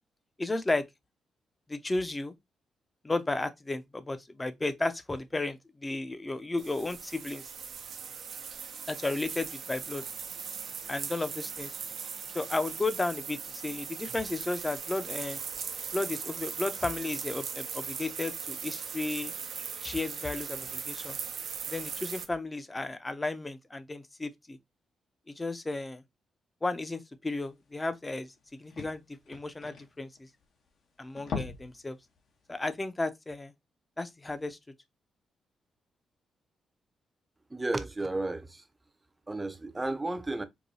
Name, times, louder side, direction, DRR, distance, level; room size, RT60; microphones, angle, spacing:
voice 1, 0.4-0.8 1.7-2.3 3.0-7.5 8.9-10.0 10.9-11.8 12.3-15.4 15.9-19.3 19.8-21.2 21.7-24.6 25.3-26.0 26.6-28.3 28.6-29.0 29.3-30.3 31.0-32.0 32.5-33.5 34.0-34.6, left 2 dB, 20° left, 0.6 m, -33 dB
sound 1, 6.6-22.3, right 6 dB, 65° right, 0.5 m, -39 dB
sound 2, 27.7-27.8 28.1-28.2 28.4-30.7 31.0-31.8 32.2-32.3 32.8-32.9, left 5 dB, 70° left, 1.0 m, -40 dB
voice 2, 37.5-38.6 39.3-40.4, right 2 dB, 20° right, 0.7 m, -33 dB
4.7 x 2.2 x 2.6 m
cardioid pair, 70°, 0 cm